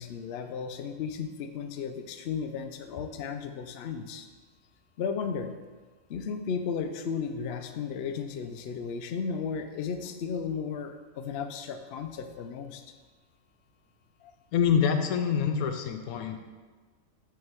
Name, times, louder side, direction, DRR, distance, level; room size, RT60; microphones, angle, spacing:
voice 1, 0.0-4.3 5.0-5.5 6.1-12.8 14.2-14.3, left 6 dB, 65° left, 7 dB, 0.6 m, -34 dB
voice 2, 14.5-16.4, left 7 dB, 85° left, 6 dB, 1.1 m, -26 dB
6.3 x 3.7 x 6.1 m, 1.4 s
omnidirectional pair, 1.5 m